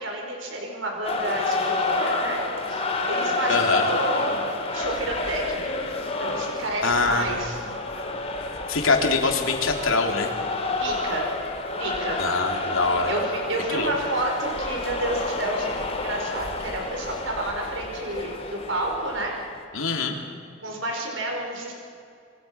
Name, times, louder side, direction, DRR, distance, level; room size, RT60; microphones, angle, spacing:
voice 1, 0.0-2.4 2.7-5.7 6.2-7.6 10.8-11.3 11.8-12.2 12.5-12.7 13.1-19.3 20.6-21.7, right 1 dB, 65° right, 1 dB, 5.2 m, -30 dB
sound 1, 1.0-19.6, left 2 dB, 30° left, 2.7 m, -29 dB
voice 2, 3.5-3.9 6.8-7.5 8.7-10.3 12.2-13.1 13.7-13.9 19.7-20.1, left 4 dB, 90° left, 2 dB, 3.3 m, -23 dB
27.5 x 23.5 x 5.9 m, 2.5 s
head